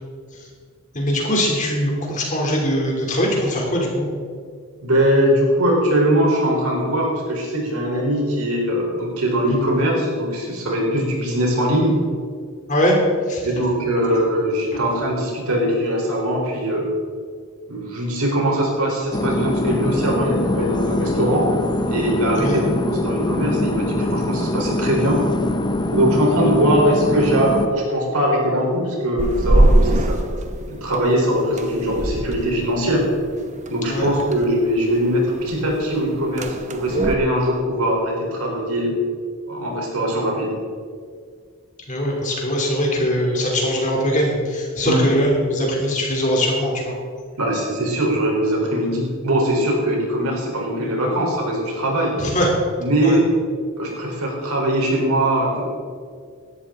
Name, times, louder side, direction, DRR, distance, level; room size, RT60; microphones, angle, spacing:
voice 1, 0.9-4.1 12.7-13.0 13.3-13.4 22.4-22.6 33.9-34.1 41.9-47.0 52.2-52.5 53.0-53.2, equal, 35° left, -1 dB, 3.3 m, -21 dB
voice 2, 4.8-12.0 13.4-16.9 17.7-21.5 21.9-25.2 25.9-30.2 30.7-33.0 33.7-39.0 39.5-40.5 44.8-45.0 47.4-52.1 52.8-53.3 53.8-55.6, equal, 85° right, -1 dB, 4.1 m, -21 dB
sound 1, 19.1-27.7, left 1 dB, 20° left, 0.8 m, -23 dB
sound 2, 29.2-37.2, right 1 dB, 35° right, 0.9 m, -23 dB
16.5 x 12.5 x 3.9 m, 2.1 s
head